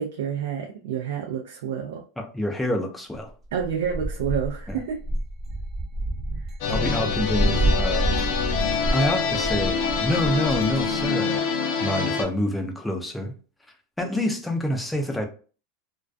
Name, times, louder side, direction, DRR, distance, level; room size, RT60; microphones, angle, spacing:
voice 1, 0.0-2.0 3.5-5.0, right 8 dB, 90° right, 0.4 m, -29 dB
voice 2, 2.2-3.3 4.7-4.8 6.7-8.1 8.9-11.5 11.8-13.3 14.0-15.3, left 1 dB, 5° left, 0.4 m, -27 dB
sound 1, 3.6-11.1, right 1 dB, 15° right, 0.8 m, -28 dB
sound 2, 6.6-12.2, left 5 dB, 65° left, 0.6 m, -25 dB
2.3 x 2.2 x 2.4 m
supercardioid pair, 145°, 0 cm